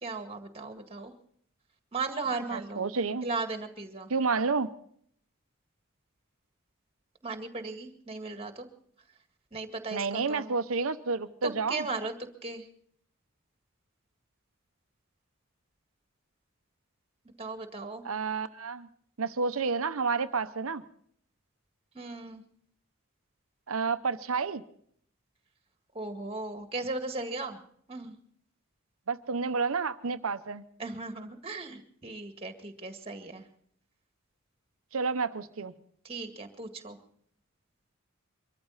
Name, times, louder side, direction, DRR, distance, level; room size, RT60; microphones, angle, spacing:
voice 1, 0.0-1.1 1.9-2.9 3.2-4.1 7.2-8.7 9.5-10.5 11.4-12.7 17.4-18.0 21.9-22.4 25.9-27.6 27.9-28.2 30.8-33.5 36.0-37.0, right 3 dB, 25° right, 6 dB, 1.9 m, -37 dB
voice 2, 2.5-3.2 4.1-4.7 9.9-11.9 18.0-18.9 19.2-20.8 23.7-24.6 29.1-30.6 34.9-35.7, right 4 dB, 75° right, 10 dB, 0.8 m, -30 dB
23.5 x 14.0 x 4.0 m, 0.62 s
head